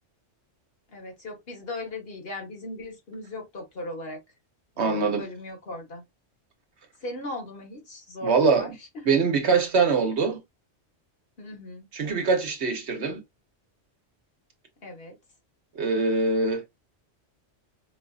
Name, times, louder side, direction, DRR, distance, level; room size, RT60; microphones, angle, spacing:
voice 1, 0.9-4.2 4.8-6.0 7.0-9.1 11.4-11.9 14.8-15.2, left 2 dB, 55° left, 1.5 m, -38 dB
voice 2, 4.8-5.2 8.2-8.8 9.0-10.4 11.9-13.2 15.8-16.6, right 4 dB, 65° right, 1.2 m, -23 dB
4.7 x 2.6 x 2.4 m
omnidirectional pair, 1.2 m